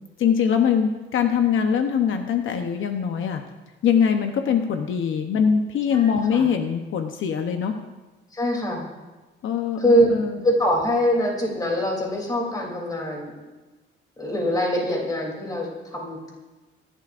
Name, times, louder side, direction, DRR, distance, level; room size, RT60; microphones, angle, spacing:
voice 1, 0.2-3.4 3.8-7.8 9.4-10.4, left 7 dB, 70° left, 6 dB, 0.8 m, -22 dB
voice 2, 5.9-6.5 8.3-8.8 9.8-10.1 10.4-13.3 14.2-16.3, equal, 20° left, -2 dB, 2.9 m, -23 dB
24.0 x 11.5 x 2.5 m, 1.2 s
wide cardioid pair, 170°, 21 cm